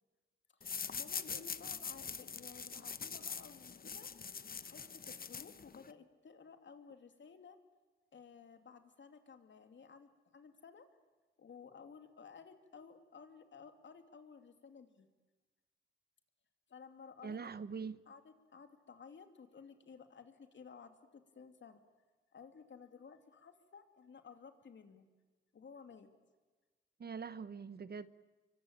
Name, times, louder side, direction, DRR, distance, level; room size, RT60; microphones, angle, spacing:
voice 1, 0.6-4.1 4.5-7.6 8.1-10.9 11.4-15.1 16.7-17.4 18.1-21.8 22.3-25.1 25.5-26.1, left 6 dB, 60° left, 2.7 m, -56 dB
sound 1, 0.6-5.9, left 6 dB, 45° left, 1.0 m, -44 dB
voice 2, 17.2-18.0 27.0-28.1, right 5 dB, 50° right, 1.0 m, -43 dB
26.5 x 23.5 x 9.0 m
cardioid pair, 70°, 21 cm